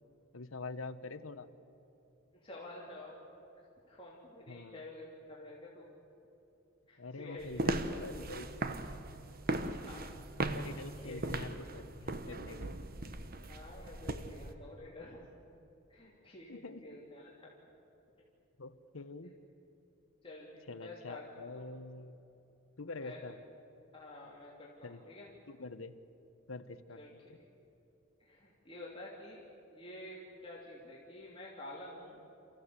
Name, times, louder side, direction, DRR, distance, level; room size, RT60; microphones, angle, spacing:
voice 1, 0.3-1.5 4.5-4.8 7.0-8.5 9.7-9.8 10.5-12.7 16.5-16.8 18.6-19.3 20.7-22.2 22.8-23.4 24.8-25.0 25.5-25.9 26.5-27.0, left 3 dB, 85° left, 11 dB, 1.1 m, -45 dB
voice 2, 2.4-3.1 3.9-5.9 6.9-8.4 9.5-10.1 10.9-11.3 13.5-15.2 15.9-17.5 20.2-21.3 21.5-21.7 22.9-23.2 23.9-25.3 26.9-27.5 28.2-29.4 29.7-32.2, left 1 dB, 25° left, -5 dB, 3.1 m, -50 dB
sound 1, 7.4-14.5, right 2 dB, 45° right, 1.1 m, -38 dB
29.0 x 15.0 x 8.2 m, 2.9 s
head